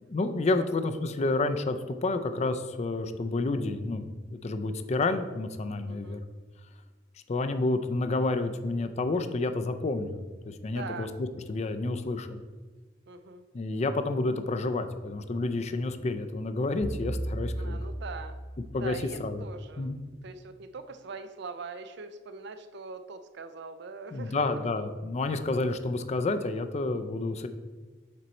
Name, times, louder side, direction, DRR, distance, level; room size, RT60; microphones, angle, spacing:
voice 1, 0.1-6.2 7.3-10.2 10.4-12.4 13.5-17.8 18.7-18.9 19.2-19.4 19.8-20.0 24.1-27.5, left 2 dB, 35° left, 9 dB, 0.4 m, -29 dB
voice 2, 5.9-6.2 10.7-11.1 13.1-13.4 17.6-18.5 18.8-24.7, right 4 dB, 60° right, 10 dB, 0.5 m, -42 dB
sound 1, 16.8-19.3, right 1 dB, 85° left, 1.3 m, -35 dB
7.6 x 4.0 x 4.3 m, 1.4 s
head